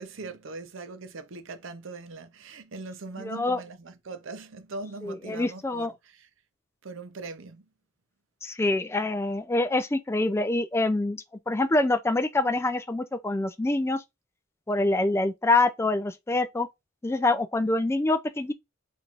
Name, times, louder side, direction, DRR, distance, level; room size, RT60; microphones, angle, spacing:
voice 1, 0.0-6.3 6.8-7.7, right 3 dB, 65° right, 0.6 m, -41 dB
voice 2, 3.2-3.6 5.0-5.9 8.4-14.0 14.7-16.7 17.0-18.5, left 2 dB, 10° left, 0.3 m, -25 dB
4.5 x 2.6 x 2.4 m
head